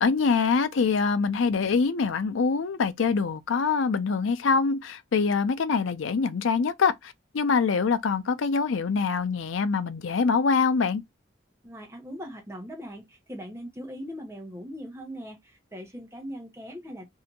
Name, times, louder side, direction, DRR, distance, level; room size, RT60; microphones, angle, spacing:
voice 1, 0.0-11.0, left 5 dB, 75° left, 0.5 m, -24 dB
voice 2, 11.6-17.1, equal, 15° right, 0.9 m, -40 dB
3.3 x 2.8 x 2.7 m
head